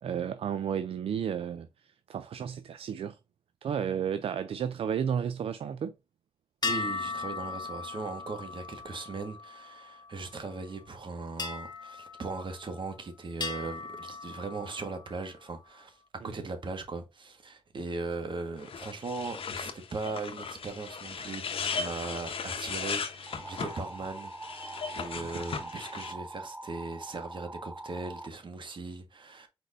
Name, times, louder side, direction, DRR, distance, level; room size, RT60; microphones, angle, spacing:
voice 1, 0.0-1.7 2.1-3.2 3.6-5.9 16.2-16.3 25.2-25.4, right 8 dB, 75° right, 0.4 m, -32 dB
sound 1, 6.6-10.3 11.4-12.9 13.4-15.1, left 4 dB, 45° left, 1.1 m, -38 dB
voice 2, 6.6-29.5, right 3 dB, 55° right, 1.5 m, -39 dB
sound 2, 18.6-26.1, left 5 dB, 65° left, 0.9 m, -37 dB
sound 3, 23.3-28.3, right 2 dB, 15° right, 0.5 m, -43 dB
4.8 x 4.2 x 2.6 m
cardioid pair, 65°, 10 cm